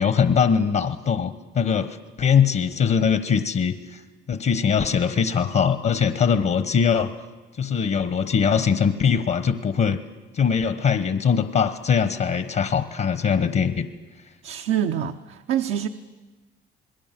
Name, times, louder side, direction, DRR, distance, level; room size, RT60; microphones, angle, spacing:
voice 1, 0.0-4.0 4.3-7.1 7.6-10.0 10.3-13.9, left 6 dB, 55° left, 10 dB, 1.2 m, -21 dB
voice 2, 14.4-15.9, right 10 dB, 85° right, 6 dB, 0.8 m, -25 dB
27.5 x 20.5 x 7.6 m, 1.2 s
cardioid pair, 90°, 20 cm